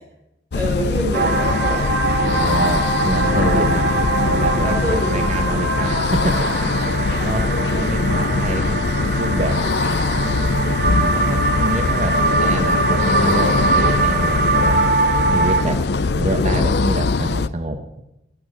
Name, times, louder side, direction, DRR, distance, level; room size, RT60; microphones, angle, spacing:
sound 1, 0.5-17.5, left 3 dB, 60° left, 0.5 m, -21 dB
voice 1, 0.5-2.0 4.6-5.8 6.6-6.8 7.2-7.4, equal, 10° left, -3 dB, 4.9 m, -27 dB
sound 2, 1.1-15.6, right 3 dB, 55° right, 2.2 m, -22 dB
voice 2, 2.2-3.9 4.2-6.7 7.0-9.6 10.1-14.8 15.3-15.8 16.1-18.0, right 1 dB, 40° right, 6 dB, 0.9 m, -27 dB
12.0 x 11.5 x 7.7 m, 0.88 s
head